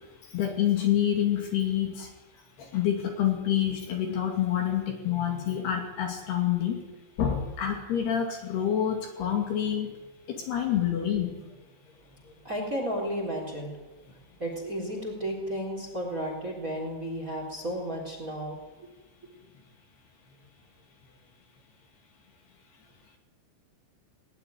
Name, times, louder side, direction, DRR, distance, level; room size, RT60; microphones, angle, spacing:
voice 1, 0.3-2.1 2.6-6.8 7.2-9.9 10.3-11.3, left 10 dB, 60° left, 3 dB, 4.2 m, -27 dB
voice 2, 12.4-13.8 14.4-18.9, equal, 20° right, 3 dB, 3.4 m, -33 dB
20.0 x 19.5 x 9.5 m, 1.1 s
omnidirectional pair, 5.8 m